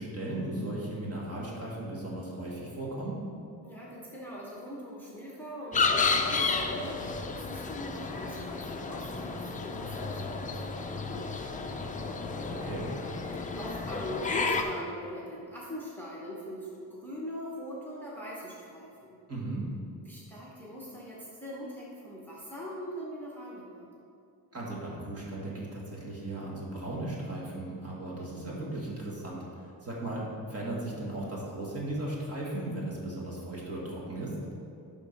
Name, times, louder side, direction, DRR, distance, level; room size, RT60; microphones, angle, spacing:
voice 1, 0.0-3.2 12.5-12.9 19.3-19.7 24.5-34.3, right 1 dB, 35° right, -4 dB, 1.7 m, -36 dB
voice 2, 3.6-12.4 13.3-19.2 20.0-23.9, equal, 5° left, -6 dB, 0.9 m, -42 dB
sound 1, 5.7-14.6, left 4 dB, 20° left, 0.3 m, -32 dB
11.0 x 3.7 x 5.3 m, 2.6 s
wide cardioid pair, 175°, 39 cm